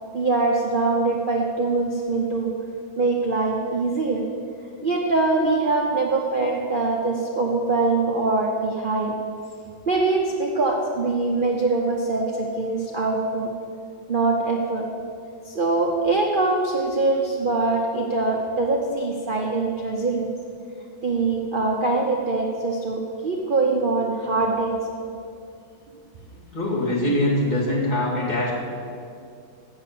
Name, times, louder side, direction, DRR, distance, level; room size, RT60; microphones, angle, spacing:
voice 1, 0.1-2.5 3.0-4.2 4.8-9.1 9.9-13.5 14.1-14.9 15.5-20.3 21.0-24.8, right 3 dB, 65° right, 0 dB, 0.5 m, -23 dB
voice 2, 26.3-28.5, left 1 dB, 20° left, -6 dB, 2.5 m, -23 dB
7.7 x 7.2 x 8.3 m, 2.4 s
omnidirectional pair, 2.1 m